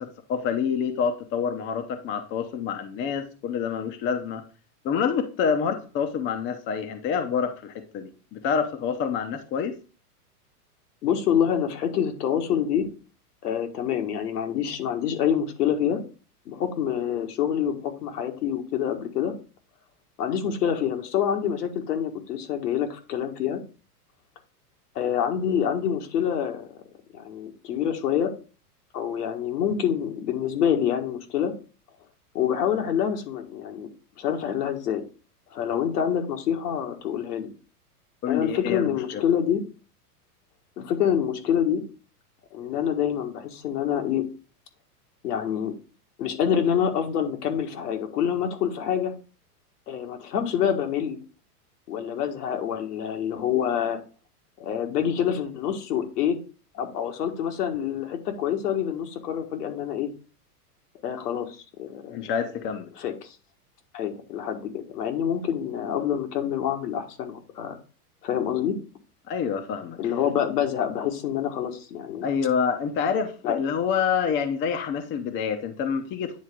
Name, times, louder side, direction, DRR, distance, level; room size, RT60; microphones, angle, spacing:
voice 1, 0.0-4.4 4.8-9.7 38.2-39.2 62.1-62.9 69.3-70.0 72.2-76.4, left 6 dB, 25° left, 7 dB, 0.7 m, -27 dB
voice 2, 11.0-12.9 13.4-16.0 16.5-19.3 20.2-23.6 25.0-26.7 27.1-28.3 28.9-31.5 32.3-33.9 34.2-35.1 35.5-37.5 38.3-39.6 40.8-41.8 42.5-44.2 45.2-45.7 46.2-49.1 49.9-51.2 51.9-54.0 54.6-56.4 56.7-60.1 61.0-62.2 63.0-63.4 63.9-67.8 68.2-68.8 70.0-72.3 73.4-73.6, left 9 dB, 80° left, 4 dB, 1.7 m, -26 dB
9.4 x 3.7 x 3.6 m, 0.35 s
hypercardioid pair, 130°, 46 cm